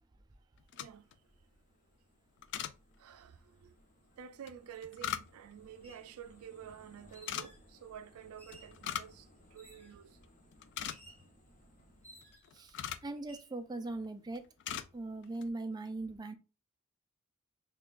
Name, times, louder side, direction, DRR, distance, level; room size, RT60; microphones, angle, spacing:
sound 1, 0.6-1.2 2.4-2.8 4.5-5.6 7.1-7.5 8.5-9.2 9.5-9.6 10.1-10.2 10.5-11.3 12.2-13.1 13.8-14.1 14.3-14.9 15.2-15.5, left 10 dB, 55° left, 0.3 m, -40 dB
voice 1, 0.7-1.1 3.0-3.7 4.2-10.2, right 8 dB, 85° right, 0.3 m, -50 dB
sound 2, 0.8-12.3, equal, 35° left, 0.9 m, -63 dB
sound 3, 4.7-4.8 5.7-6.1 7.1-7.7 8.4-8.8 9.6-10.0 10.9-11.3 12.0-12.6 13.2-13.5, right 1 dB, 10° left, 1.1 m, -58 dB
voice 2, 12.5-14.4 14.9-16.3, right 2 dB, 20° right, 0.4 m, -40 dB
5.6 x 2.3 x 2.4 m
head